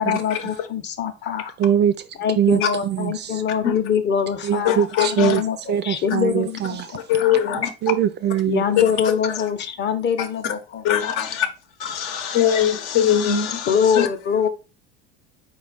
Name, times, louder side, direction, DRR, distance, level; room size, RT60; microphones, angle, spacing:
voice 1, 0.0-1.5 2.2-5.6 5.8-7.6 8.5-11.1 13.7-14.5, left 7 dB, 35° left, 0.7 m, -24 dB
voice 2, 1.6-2.0 2.4-3.4 4.4-5.4 5.7-7.0 7.8-8.6, right 10 dB, 35° right, 0.4 m, -22 dB
voice 3, 4.6-5.4 7.1-7.7 9.3-9.4 10.2-10.5 10.8-11.5 11.8-14.1, left 9 dB, 65° left, 0.8 m, -22 dB
4.2 x 2.4 x 3.9 m
hypercardioid pair, 75°, 32 cm